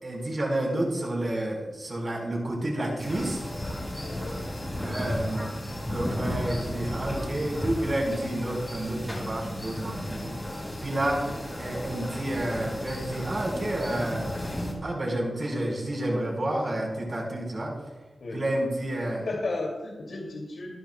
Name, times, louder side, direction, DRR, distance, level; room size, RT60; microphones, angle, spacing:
voice 1, 0.0-3.4 4.8-5.5 5.8-10.3 10.8-11.2 11.6-14.3 14.8-17.7 18.3-19.3, right 1 dB, 40° right, -2 dB, 4.5 m, -30 dB
sound 1, 3.0-14.7, left 1 dB, 15° left, 4.7 m, -34 dB
voice 2, 4.0-4.4 18.2-18.4 19.0-20.7, left 2 dB, 80° left, -3 dB, 2.5 m, -34 dB
25.5 x 10.0 x 2.3 m, 1.1 s
wide cardioid pair, 135°, 0 cm